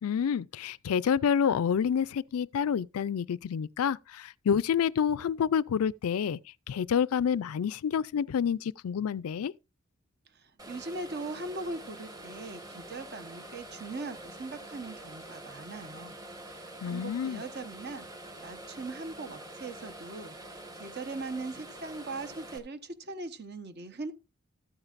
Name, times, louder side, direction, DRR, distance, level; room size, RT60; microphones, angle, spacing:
voice 1, 0.0-6.4 6.7-9.5 16.8-17.4, left 7 dB, 85° left, 0.4 m, -28 dB
voice 2, 10.3-16.2 16.5-24.1, right 3 dB, 50° right, 1.1 m, -40 dB
sound 1, 10.6-22.6, right 1 dB, 15° right, 1.4 m, -46 dB
13.5 x 8.9 x 2.5 m
head